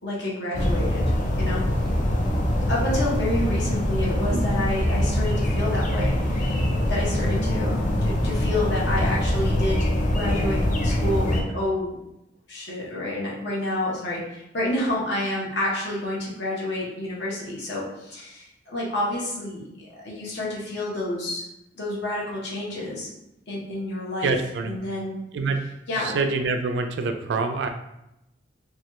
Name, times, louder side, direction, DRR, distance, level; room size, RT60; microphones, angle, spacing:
voice 1, 0.0-1.0 1.4-1.6 2.7-6.6 6.9-12.0 12.5-21.4 21.7-23.1 23.5-24.3 24.7-25.2 25.9-26.2, left 1 dB, 70° left, -5 dB, 1.0 m, -29 dB
sound 1, 0.5-11.4, left 1 dB, 45° left, 0.4 m, -23 dB
voice 2, 24.2-24.8 25.3-25.6 25.9-27.7, right 4 dB, 65° right, 6 dB, 0.3 m, -26 dB
3.0 x 2.3 x 2.9 m, 0.86 s
head